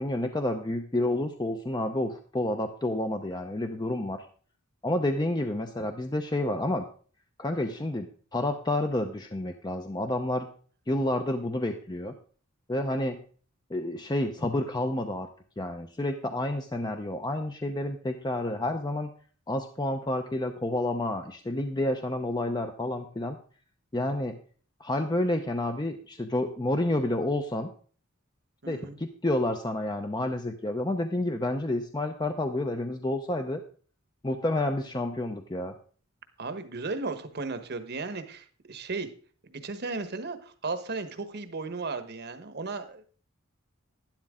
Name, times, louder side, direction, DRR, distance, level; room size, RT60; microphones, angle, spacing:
voice 1, 0.0-4.3 4.8-6.9 7.4-10.5 10.9-12.1 12.7-13.2 13.7-15.3 15.6-19.1 19.5-23.4 23.9-24.4 24.8-27.7 28.7-33.6 34.2-35.7, left 1 dB, 20° left, 5 dB, 0.7 m, -29 dB
voice 2, 28.6-29.0 36.4-39.1 39.4-43.0, right 3 dB, 50° right, 10 dB, 1.2 m, -35 dB
12.0 x 10.5 x 3.7 m, 0.42 s
head